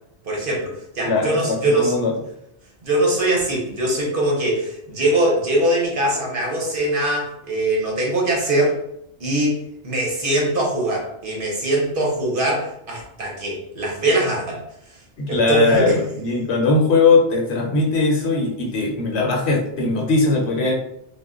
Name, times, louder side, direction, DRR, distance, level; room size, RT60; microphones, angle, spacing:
voice 1, 0.2-1.9 2.8-8.8 9.2-9.6 9.8-14.6 15.3-16.0, right 1 dB, 50° right, -2 dB, 0.9 m, -22 dB
voice 2, 1.1-2.1 15.2-20.7, left 3 dB, 70° left, -1 dB, 0.9 m, -20 dB
2.3 x 2.1 x 3.6 m, 0.77 s
omnidirectional pair, 1.2 m